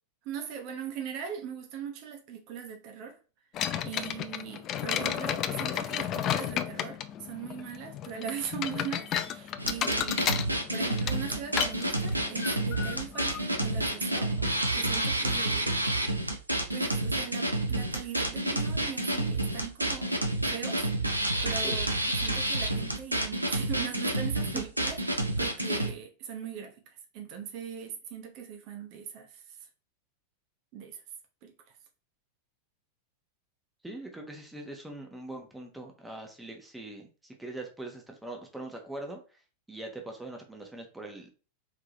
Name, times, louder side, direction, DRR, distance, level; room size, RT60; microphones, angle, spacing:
voice 1, 0.2-3.2 3.8-15.7 16.7-20.2 20.4-21.9 22.1-29.6 30.7-31.0 31.4-31.5, right 7 dB, 45° right, 1.0 m, -40 dB
sound 1, 3.5-14.5, left 10 dB, 35° left, 0.4 m, -34 dB
sound 2, 9.6-25.9, right 1 dB, 85° right, 0.7 m, -29 dB
voice 2, 33.8-39.4 39.7-41.3, right 2 dB, 5° right, 1.1 m, -42 dB
4.8 x 3.6 x 3.0 m
figure-of-eight pair, 90°, 0 cm